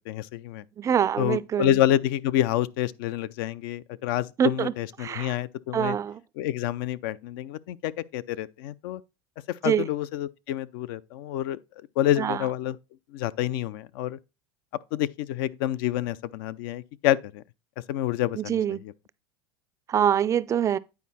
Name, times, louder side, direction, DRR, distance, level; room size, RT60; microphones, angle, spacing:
voice 1, 0.1-0.6 1.2-6.0 6.4-9.0 9.5-11.6 12.0-12.8 13.1-14.2 14.9-17.4 17.9-18.8, left 12 dB, 70° left, 0.5 m, -28 dB
voice 2, 0.8-1.8 4.4-4.7 5.0-5.4 5.7-6.2 9.6-9.9 12.2-12.5 18.4-18.8 19.9-20.8, right 9 dB, 25° right, 0.3 m, -25 dB
9.4 x 4.6 x 4.1 m
supercardioid pair, 120°, 12 cm